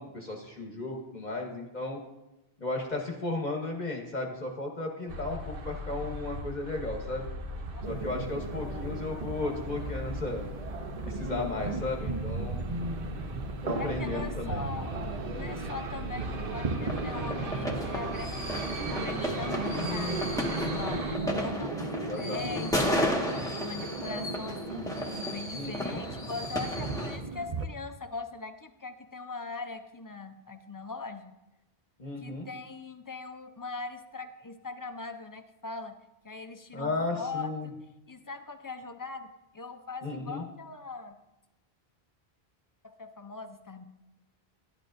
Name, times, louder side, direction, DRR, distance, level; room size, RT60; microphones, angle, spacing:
voice 1, 0.0-2.0 2.6-7.3 7.9-10.5 11.0-12.7 13.6-14.7 19.7-20.4 21.8-22.7 25.5-26.0 32.0-32.5 36.7-37.7 40.0-40.4, left 2 dB, 45° left, 0 dB, 1.1 m, -35 dB
sound 1, 5.1-21.2, right 1 dB, 65° right, 1.0 m, -38 dB
sound 2, 7.8-27.7, right 3 dB, 45° right, 0.7 m, -37 dB
voice 2, 13.8-14.9 15.3-25.0 25.3-31.3 32.2-36.0 36.2-37.7 38.1-41.2 42.8-43.8, left 3 dB, 30° left, 7 dB, 0.4 m, -41 dB
sound 3, 16.8-27.2, left 1 dB, 5° left, 1.1 m, -33 dB
12.0 x 11.0 x 2.6 m, 0.98 s
omnidirectional pair, 1.0 m